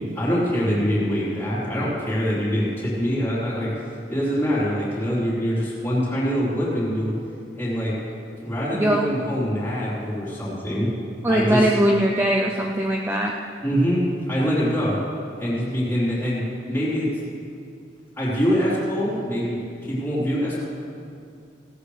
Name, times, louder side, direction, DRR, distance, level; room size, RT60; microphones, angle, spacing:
voice 1, 0.1-3.7 4.1-7.1 7.5-8.0 8.4-10.9 11.3-11.7 13.6-15.0 15.4-16.4 16.7-17.1 18.2-20.6, equal, 10° left, -9 dB, 3.9 m, -24 dB
voice 2, 11.2-13.3, right 1 dB, 15° right, -1 dB, 0.6 m, -21 dB
18.0 x 13.0 x 3.4 m, 2.4 s
head